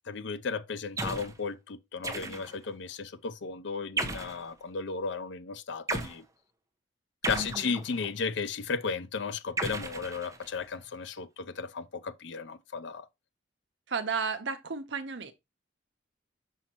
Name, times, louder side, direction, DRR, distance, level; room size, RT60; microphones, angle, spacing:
voice 1, 0.1-6.2 7.3-13.1, left 5 dB, 65° left, 0.5 m, -35 dB
sound 1, 1.0-1.4 2.0-2.7 4.0-4.4 5.9-6.2 7.2-8.1 9.6-10.6, right 2 dB, 15° right, 0.9 m, -35 dB
voice 2, 7.3-7.7 13.9-15.3, right 5 dB, 65° right, 0.9 m, -33 dB
6.1 x 5.7 x 2.9 m
head